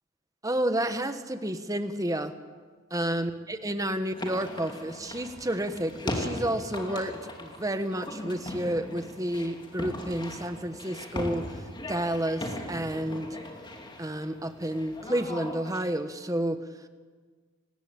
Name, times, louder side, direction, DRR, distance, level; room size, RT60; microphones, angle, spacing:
voice 1, 0.4-2.3 2.9-13.4 14.0-16.6, right 1 dB, 15° right, 9 dB, 1.4 m, -30 dB
sound 1, 4.1-15.9, left 1 dB, 20° left, 2.7 m, -39 dB
29.0 x 19.5 x 8.8 m, 1.5 s
head